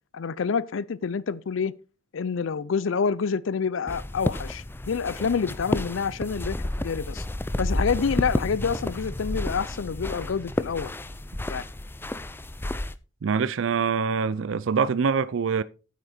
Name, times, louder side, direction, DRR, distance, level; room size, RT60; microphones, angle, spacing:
voice 1, 0.1-1.7 2.1-7.3 7.6-10.9 11.5-11.6, left 6 dB, 75° left, 0.4 m, -27 dB
sound 1, 3.9-13.0, left 1 dB, 10° left, 0.4 m, -31 dB
voice 2, 13.2-15.6, right 5 dB, 75° right, 0.4 m, -24 dB
9.0 x 8.3 x 4.3 m
head